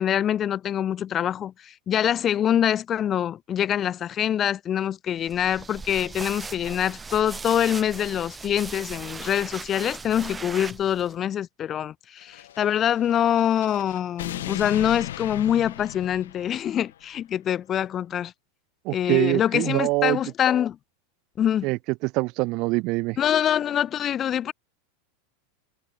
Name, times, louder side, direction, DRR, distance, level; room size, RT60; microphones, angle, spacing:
voice 1, 0.0-18.3 18.9-20.8 21.4-21.7 23.2-24.5, left 10 dB, 35° left, 2.5 m, -25 dB
sound 1, 5.2-11.1, right 4 dB, 15° right, 3.8 m, -38 dB
sound 2, 12.2-17.0, left 12 dB, 75° left, 3.1 m, -37 dB
voice 2, 18.8-20.2 21.6-23.2, right 24 dB, 55° right, 1.2 m, -24 dB
hypercardioid pair, 95°, 0 cm